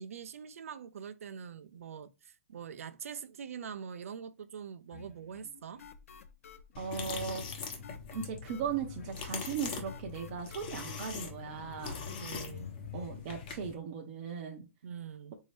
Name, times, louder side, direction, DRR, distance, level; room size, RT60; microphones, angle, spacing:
voice 1, 0.0-5.8 12.2-12.7 14.8-15.3, right 7 dB, 80° right, 0.5 m, -44 dB
sound 1, 4.9-13.2, left 5 dB, 80° left, 0.5 m, -52 dB
sound 2, 6.7-13.7, left 5 dB, 40° left, 1.0 m, -42 dB
voice 2, 6.8-7.4 8.1-12.0 12.9-14.7, right 7 dB, 40° right, 0.6 m, -38 dB
4.1 x 2.7 x 3.1 m
hypercardioid pair, 155°, 8 cm